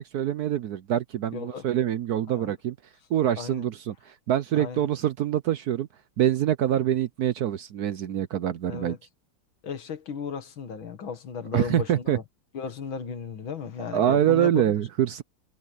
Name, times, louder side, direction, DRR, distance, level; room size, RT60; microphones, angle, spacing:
voice 1, 0.0-2.8 3.1-5.9 6.2-9.0 11.5-12.2 13.9-15.2, right 11 dB, 65° right, 1.0 m, -25 dB
voice 2, 1.3-1.6 2.3-2.5 3.4-3.7 4.6-4.9 8.7-9.0 9.6-12.2 12.5-14.7, left 6 dB, 80° left, 2.5 m, -35 dB
omnidirectional pair, 2.1 m